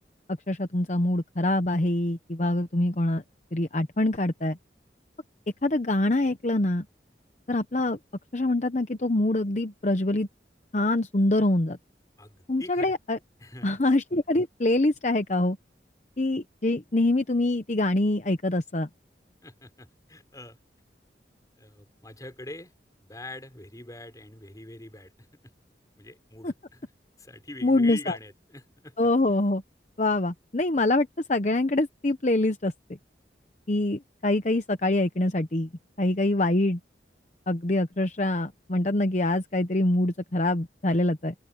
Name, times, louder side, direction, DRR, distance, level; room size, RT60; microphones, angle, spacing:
voice 1, 0.5-3.2 3.5-4.6 5.6-6.8 7.5-8.0 8.3-10.3 10.7-11.8 12.5-13.2 13.6-15.6 16.2-18.9 26.4-26.5 27.6-28.1 29.0-29.6 30.0-32.7 33.7-35.7 36.0-36.8 37.5-41.3, left 2 dB, 40° left, 0.9 m, -25 dB
voice 2, 12.2-13.0 13.4-13.8 19.4-20.6 21.6-22.7 23.0-25.5 26.0-26.9 27.2-29.1, left 1 dB, 20° left, 6.2 m, -44 dB
open air
head